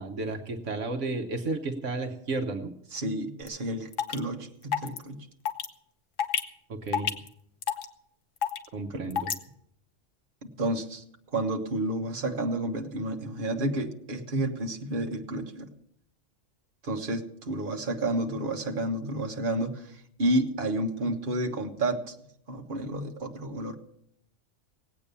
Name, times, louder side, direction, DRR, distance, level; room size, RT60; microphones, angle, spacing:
voice 1, 0.0-2.7 6.7-7.1 8.7-9.3, right 3 dB, 70° right, 4 dB, 1.4 m, -32 dB
voice 2, 2.9-5.3 8.9-9.0 10.6-11.0 11.3-15.7 16.8-22.1 22.5-23.7, right 1 dB, 45° right, 2 dB, 1.5 m, -30 dB
sound 1, 3.5-3.6 3.9-4.2 4.7-5.0 5.5-5.7 6.2-6.4 6.9-7.3 7.6-7.9 8.4-8.7 9.1-9.3, left 8 dB, 70° left, 1.3 m, -27 dB
18.5 x 8.6 x 6.9 m, 0.73 s
omnidirectional pair, 1.3 m